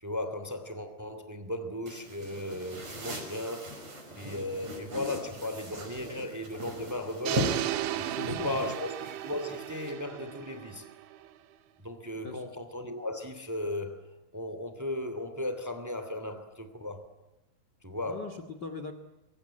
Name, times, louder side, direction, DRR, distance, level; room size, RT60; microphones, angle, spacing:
voice 1, 0.0-3.7 4.2-7.7 8.3-10.9 11.8-14.1 14.3-17.1 17.8-18.2, left 1 dB, 10° right, 0.8 m, -36 dB
sound 1, 1.9-9.9, equal, 35° right, 6.5 m, -40 dB
sound 2, 7.3-11.3, right 13 dB, 75° right, 3.7 m, -35 dB
voice 2, 8.1-8.5 12.2-12.4 18.0-18.9, left 4 dB, 65° left, 1.0 m, -40 dB
25.5 x 24.0 x 8.9 m
omnidirectional pair, 5.5 m